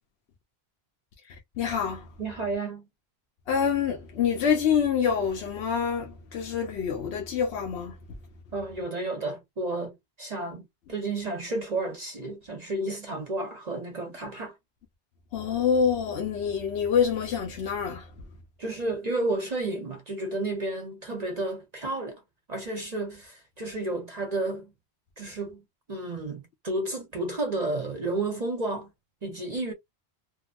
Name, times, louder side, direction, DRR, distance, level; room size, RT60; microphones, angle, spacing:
voice 1, 1.6-2.0 3.5-7.9 15.3-18.1, left 7 dB, 80° left, 0.9 m, -26 dB
voice 2, 2.2-2.9 8.5-14.5 18.6-22.2 22.5-24.7 25.2-28.9 29.2-29.7, right 2 dB, 40° right, 0.8 m, -32 dB
2.8 x 2.5 x 2.4 m
omnidirectional pair, 1.1 m